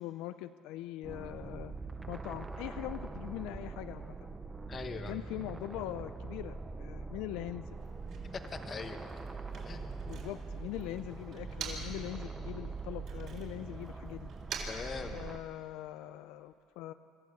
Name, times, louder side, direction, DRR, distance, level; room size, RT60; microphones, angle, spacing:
voice 1, 0.0-1.7 2.1-4.1 5.1-7.7 10.1-14.3 15.1-16.9, left 14 dB, 70° left, 11 dB, 0.5 m, -42 dB
sound 1, 1.0-15.4, right 4 dB, 10° right, 0.6 m, -43 dB
voice 2, 4.7-5.2 8.5-9.3 9.5-10.0 10.8-11.0 14.7-15.2, left 5 dB, 25° left, 7 dB, 1.2 m, -43 dB
Motor vehicle (road), 7.6-12.1 12.4-15.7, right 5 dB, 45° right, 4.1 m, -48 dB
25.0 x 14.0 x 8.2 m, 2.3 s
cardioid pair, 165°, 0 cm